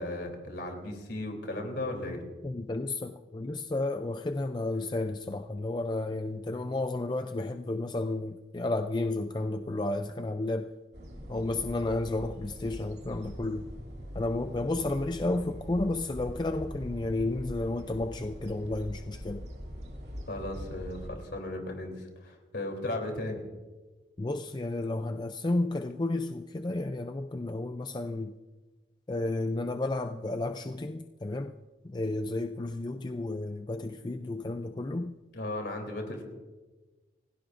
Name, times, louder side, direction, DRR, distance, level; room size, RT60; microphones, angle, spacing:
voice 1, 0.0-2.2 20.3-23.4 35.3-36.2, left 1 dB, 65° left, 2 dB, 3.3 m, -36 dB
voice 2, 2.4-10.7 11.3-13.7 14.1-19.4 24.2-28.3 29.1-31.5 31.8-35.2, left 2 dB, 25° left, 7 dB, 0.4 m, -32 dB
sound 1, 10.9-21.1, equal, 60° right, 2.9 m, -42 dB
28.0 x 17.0 x 2.6 m, 1.3 s
head